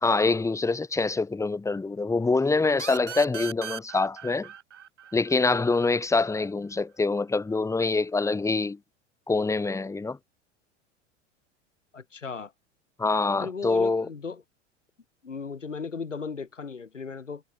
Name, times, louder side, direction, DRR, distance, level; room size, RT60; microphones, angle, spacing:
voice 1, 0.0-4.5 5.1-8.8 9.3-10.2 13.0-14.1, left 3 dB, 10° left, 1.4 m, -25 dB
sound 1, 2.8-6.2, right 9 dB, 75° right, 7.8 m, -39 dB
voice 2, 11.9-12.5 13.4-14.4 15.2-17.4, left 5 dB, 85° left, 7.1 m, -36 dB
figure-of-eight pair, 90°, 36 cm